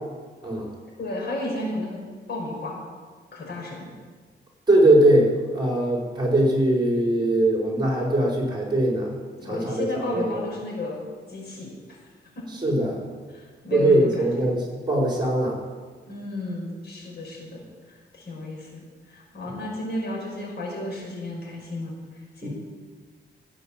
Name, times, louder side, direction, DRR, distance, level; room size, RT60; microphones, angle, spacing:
voice 1, 1.0-2.0 2.3-2.8 3.3-3.9 9.4-11.0 11.3-11.7 12.4-12.5 13.3-14.3 16.1-17.6 17.9-21.9 22.4-22.5, left 2 dB, 65° left, -2 dB, 5.5 m, -33 dB
voice 2, 4.7-9.1 9.4-10.3 12.6-13.0 13.7-15.6 19.5-19.6 22.4-22.5, right 1 dB, 25° right, -2 dB, 4.7 m, -21 dB
14.5 x 8.7 x 7.4 m, 1.5 s
cardioid pair, 105°, 18 cm